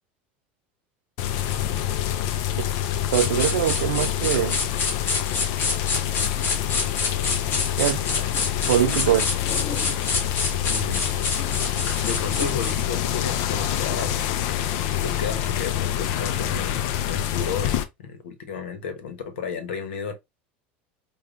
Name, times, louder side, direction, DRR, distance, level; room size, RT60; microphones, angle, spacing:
sound 1, 1.2-17.8, left 11 dB, 60° left, 0.5 m, -26 dB
sound 2, 3.1-12.9, left 4 dB, 40° left, 1.3 m, -28 dB
voice 1, 3.1-4.6 7.8-8.0 8.7-9.3, right 11 dB, 90° right, 0.3 m, -22 dB
voice 2, 10.7-11.1 12.0-14.2 15.0-17.7 18.0-20.1, left 5 dB, 90° left, 1.0 m, -32 dB
4.7 x 2.3 x 2.5 m
supercardioid pair, 110°, 6 cm